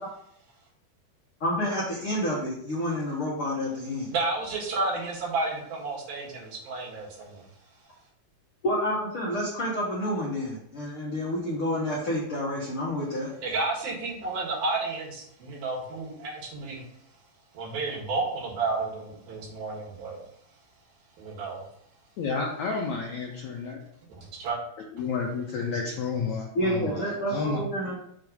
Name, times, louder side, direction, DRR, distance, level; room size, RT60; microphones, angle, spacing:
voice 1, 1.4-4.1 8.6-13.3 26.5-27.9, equal, 60° left, -6 dB, 1.4 m, -29 dB
voice 2, 4.1-7.4 13.4-16.8 17.5-20.2 21.2-21.6 24.2-24.6, right 3 dB, 75° right, -4 dB, 3.5 m, -31 dB
voice 3, 22.2-23.8 24.9-27.6, left 4 dB, 80° left, -1 dB, 1.7 m, -31 dB
6.7 x 3.2 x 5.2 m, 0.69 s
omnidirectional pair, 4.3 m